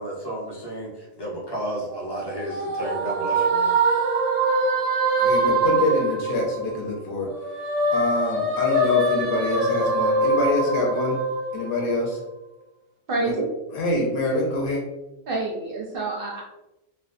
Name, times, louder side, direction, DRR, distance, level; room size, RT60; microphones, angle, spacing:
voice 1, 0.0-3.8, right 1 dB, 35° left, -4 dB, 0.4 m, -32 dB
sound 1, 1.9-6.9 7.3-12.0, right 2 dB, 90° right, 1.0 m, -23 dB
voice 2, 5.2-7.3 7.9-11.2 11.5-12.2 13.2-13.3 13.7-14.8, left 2 dB, 60° left, -2 dB, 0.8 m, -25 dB
voice 3, 13.1-13.4 15.3-16.4, right 2 dB, 60° right, -2 dB, 0.6 m, -27 dB
2.6 x 2.1 x 2.4 m, 0.96 s
omnidirectional pair, 1.2 m